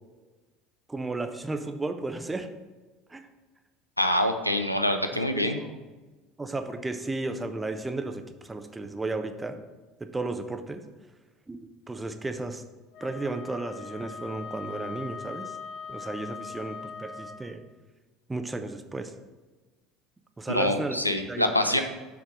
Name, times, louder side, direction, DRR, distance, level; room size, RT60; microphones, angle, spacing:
voice 1, 0.9-2.5 3.1-3.2 5.1-5.7 6.4-9.6 10.0-10.8 11.5-12.6 13.0-15.6 15.9-17.6 18.3-19.1 20.4-21.0 21.3-21.8, right 2 dB, 15° right, 7 dB, 0.6 m, -34 dB
voice 2, 4.0-5.6 20.5-21.8, left 1 dB, 90° left, 6 dB, 0.5 m, -25 dB
Wind instrument woodwind instrument, 12.9-17.5, left 6 dB, 60° left, 0.8 m, -40 dB
6.5 x 3.6 x 6.2 m, 1.3 s
figure-of-eight pair, 65°, 0 cm